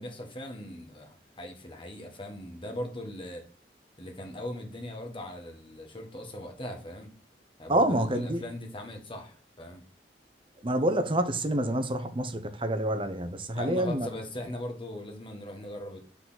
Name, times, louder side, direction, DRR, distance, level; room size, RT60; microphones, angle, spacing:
voice 1, 0.0-3.4 4.0-7.1 7.6-9.8 13.5-16.0, left 1 dB, 30° left, 1.5 m, -39 dB
voice 2, 7.7-8.4 10.6-14.1, right 1 dB, 30° right, 0.8 m, -27 dB
6.9 x 4.1 x 4.0 m
head